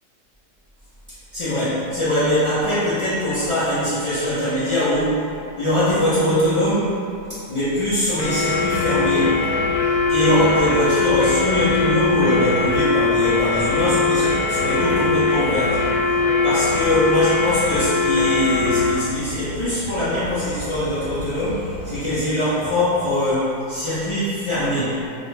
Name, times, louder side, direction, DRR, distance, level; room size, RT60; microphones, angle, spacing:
voice 1, 1.3-5.3 5.6-6.9 7.5-9.4 10.1-15.8 16.4-25.0, left 1 dB, 45° left, -14 dB, 0.4 m, -22 dB
sound 1, 8.2-19.0, left 4 dB, 85° left, 1.2 m, -21 dB
sound 2, 8.6-22.3, left 2 dB, 70° left, 1.5 m, -35 dB
3.2 x 3.0 x 3.2 m, 2.6 s
omnidirectional pair, 1.8 m